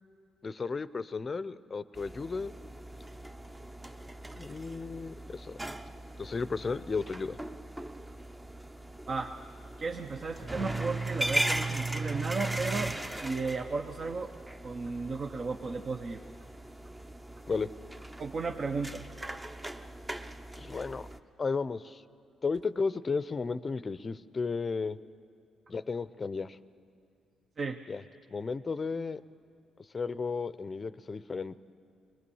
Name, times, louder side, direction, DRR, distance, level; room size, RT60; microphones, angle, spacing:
voice 1, 0.4-2.5 4.4-5.6 6.2-7.4 17.5-17.7 20.6-21.1 21.4-22.0 22.4-25.0 25.7-26.6 27.9-28.0 28.3-29.2 29.9-31.6, left 4 dB, 35° left, 15 dB, 0.6 m, -34 dB
sound 1, 1.9-21.2, right 2 dB, 15° right, 0.8 m, -38 dB
voice 2, 9.8-14.3 14.6-16.2 18.2-19.1 27.6-27.8, right 4 dB, 45° right, 5 dB, 0.8 m, -34 dB
22.0 x 21.0 x 7.1 m, 2.3 s
cardioid pair, 90°, 0 cm